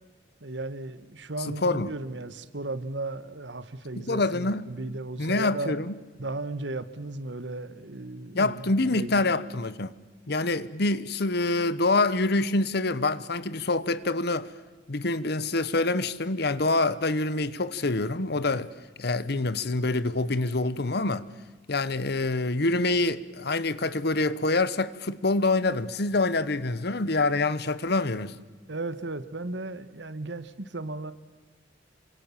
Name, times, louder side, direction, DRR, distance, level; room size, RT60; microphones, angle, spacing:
voice 1, 0.4-5.7 6.2-9.2 28.7-31.1, right 2 dB, 70° right, 1.4 m, -35 dB
voice 2, 1.5-1.9 4.0-4.6 5.2-5.9 8.3-9.9 10.3-14.5 14.9-18.7 19.0-21.3 21.7-28.3, left 2 dB, 60° left, 1.1 m, -26 dB
28.0 x 24.5 x 7.3 m
head